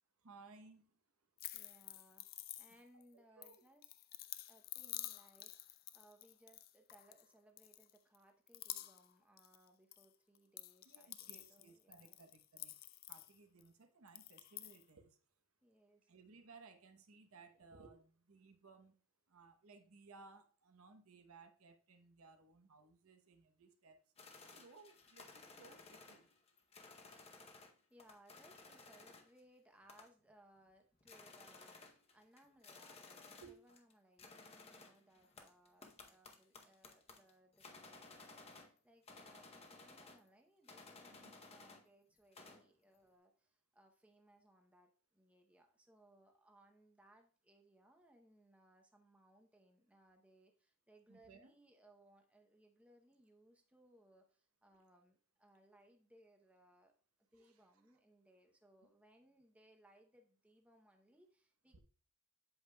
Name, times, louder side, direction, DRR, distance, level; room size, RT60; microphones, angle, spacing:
voice 1, 0.2-1.0 3.1-3.5 10.8-12.7 13.1-15.2 16.1-19.0 19.3-24.0 24.4-26.3 33.4-33.6 41.2-41.3 51.1-51.6 57.4-57.7 61.7-61.8, right 4 dB, 75° right, 6 dB, 0.9 m, -61 dB
sound 1, 1.4-3.0 3.4-7.2 7.6-8.2 8.5-9.1 9.4-10.0 10.3-13.7 14.1-14.8, left 15 dB, 45° left, 0.3 m, -50 dB
voice 2, 1.5-2.3 2.6-3.9 4.5-12.2 15.6-16.1 27.9-56.9 57.3-61.8, right 1 dB, 5° right, 3 dB, 0.7 m, -68 dB
sound 2, 24.2-27.7 28.0-29.4 29.9-30.3 30.7-30.8 31.0-33.9 34.2-38.8 39.1-40.3 40.7-41.9 42.2-42.7, left 3 dB, 30° left, 0.7 m, -58 dB
8.0 x 7.1 x 2.2 m, 0.39 s
head